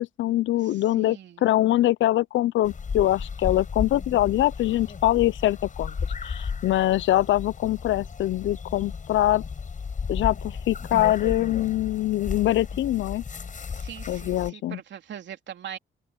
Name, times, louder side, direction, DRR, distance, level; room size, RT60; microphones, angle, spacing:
voice 1, 0.0-5.9 6.2-9.4 10.1-13.2 14.1-14.8, left 14 dB, 75° left, 0.6 m, -23 dB
voice 2, 0.6-1.4 13.7-15.8, right 9 dB, 65° right, 3.3 m, -41 dB
sound 1, 2.6-14.5, left 5 dB, 40° left, 7.2 m, -34 dB
open air
cardioid pair, 90°, 20 cm